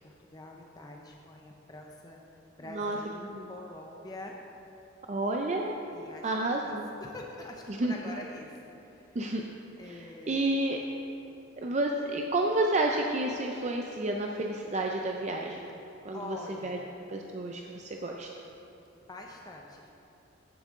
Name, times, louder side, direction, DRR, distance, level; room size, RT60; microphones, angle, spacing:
voice 1, 0.0-2.2 2.6-4.4 5.9-9.2 9.8-10.5 16.1-16.9 19.1-19.9, left 2 dB, 20° left, 0 dB, 0.6 m, -45 dB
voice 2, 2.7-3.0 3.3-3.5 5.1-5.7 6.1-6.9 7.7-7.9 9.1-9.4 9.8-10.8 11.6-15.7 16.0-16.4 16.6-16.8 17.1-18.3, right 2 dB, 35° right, 1 dB, 0.5 m, -30 dB
14.5 x 7.4 x 3.7 m, 2.9 s
head